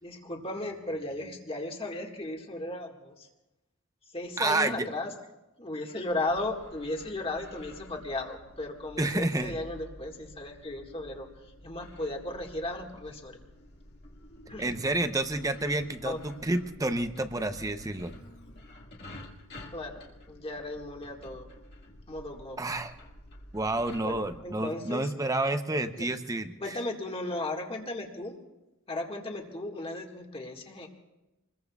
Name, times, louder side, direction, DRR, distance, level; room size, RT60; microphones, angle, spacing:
voice 1, 0.0-3.3 4.1-5.1 5.6-13.4 14.5-14.7 16.0-16.2 19.7-20.0 20.3-21.5 22.1-22.6 24.0-25.1 26.0-26.1 26.6-28.3 28.9-30.9, left 2 dB, 30° left, 2 dB, 1.8 m, -36 dB
voice 2, 4.4-4.9 9.0-9.5 14.6-18.2 22.6-22.9 23.5-26.5, right 2 dB, 15° right, 9 dB, 0.7 m, -29 dB
sound 1, 6.1-24.4, left 1 dB, 55° left, 1.9 m, -50 dB
Marimba xylophone, 14.1-19.3, equal, 75° left, 4.4 m, -53 dB
26.5 x 21.5 x 2.4 m, 1.0 s
head